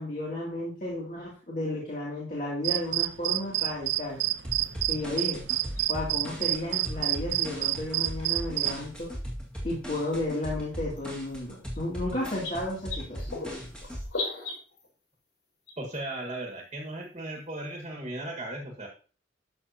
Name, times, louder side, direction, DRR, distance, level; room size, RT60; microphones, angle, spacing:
voice 1, 0.0-4.2 4.9-5.4 5.9-9.1 9.6-13.4, left 1 dB, 40° left, -5 dB, 2.7 m, -33 dB
sound 1, 2.6-8.8, right 15 dB, 70° right, 0.3 m, -29 dB
sound 2, 4.4-14.0, equal, 5° left, 2.0 m, -38 dB
sound 3, 4.6-4.7 5.5-5.9 7.4-7.5 8.9-9.0 10.0-10.1 11.0-11.1 11.3-11.4 11.7-11.8 12.2-14.9 15.7-16.0 17.0-17.1 17.3-17.4, left 3 dB, 85° left, 3.8 m, -36 dB
voice 2, 15.8-18.9, right 1 dB, 30° right, 1 dB, 1.7 m, -36 dB
12.5 x 6.4 x 2.9 m, 0.39 s
head